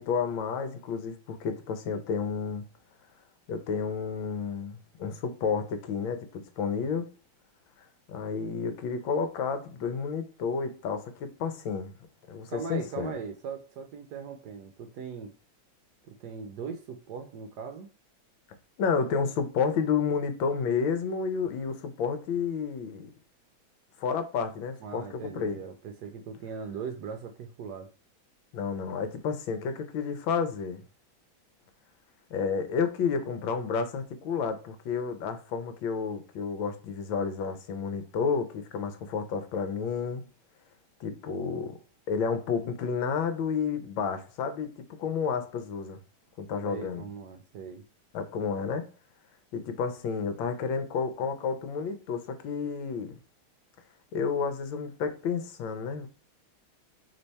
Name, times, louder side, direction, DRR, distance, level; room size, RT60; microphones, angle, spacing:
voice 1, 0.0-2.6 3.5-7.1 8.1-11.9 12.3-13.1 18.8-23.1 24.0-25.6 28.5-30.8 32.3-40.3 41.0-41.8 42.1-46.0 46.4-47.1 48.1-48.9 49.5-53.2 54.1-56.1, left 5 dB, 75° left, 1.5 m, -31 dB
voice 2, 12.5-15.3 16.0-17.9 24.8-27.9 46.6-47.8, right 6 dB, 70° right, 1.0 m, -39 dB
3.4 x 3.3 x 4.1 m
omnidirectional pair, 2.2 m